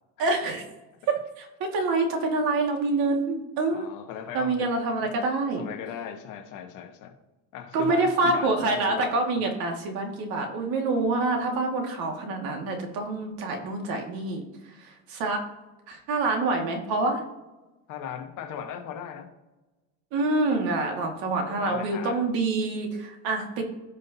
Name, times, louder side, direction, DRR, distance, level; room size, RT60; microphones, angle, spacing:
voice 1, 0.2-0.6 1.1-1.5 1.7-3.9 4.3-5.6 7.7-14.4 14.8-15.4 15.9-17.2 20.1-23.6, right 3 dB, 70° right, 2 dB, 2.0 m, -26 dB
voice 2, 3.7-4.7 5.6-7.1 7.5-9.4 17.9-19.3 21.0-21.2 21.5-22.2, left 8 dB, 55° left, 5 dB, 1.3 m, -38 dB
16.0 x 5.5 x 2.8 m, 1.1 s
cardioid pair, 165°, 36 cm